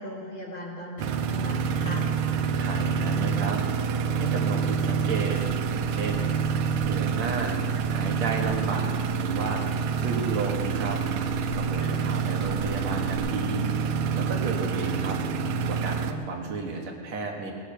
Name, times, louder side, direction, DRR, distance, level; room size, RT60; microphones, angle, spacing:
voice 1, 0.0-2.0 11.8-12.0, left 1 dB, 45° left, -3 dB, 2.1 m, -38 dB
sound 1, 1.0-16.1, right 6 dB, 90° right, 2.3 m, -27 dB
voice 2, 2.6-3.6 4.2-5.4 5.7-6.3 6.9-7.5 7.9-9.6 10.0-11.0 11.5-13.7 14.1-15.2 15.7-17.5, right 4 dB, 65° right, 1 dB, 2.5 m, -33 dB
sound 2, 5.1-13.2, left 1 dB, 75° left, 4.4 m, -45 dB
18.5 x 8.3 x 6.8 m, 2.3 s
omnidirectional pair, 3.6 m